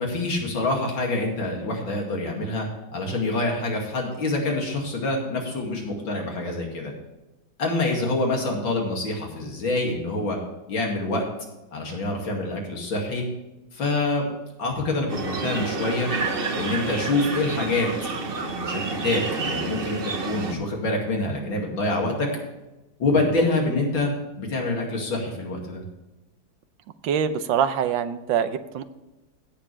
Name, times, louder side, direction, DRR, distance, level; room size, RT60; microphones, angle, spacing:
voice 1, 0.0-6.9 7.6-10.4 10.7-11.2 11.7-13.2 13.7-14.3 14.6-16.1 16.6-17.9 18.3-22.3 23.0-24.1 24.4-25.8, left 2 dB, 80° left, 0 dB, 3.1 m, -26 dB
sound 1, 15.1-20.5, right 4 dB, 35° right, 1.0 m, -29 dB
voice 2, 27.0-28.8, right 8 dB, 80° right, 11 dB, 1.5 m, -24 dB
16.0 x 7.2 x 3.3 m, 1.0 s
omnidirectional pair, 2.1 m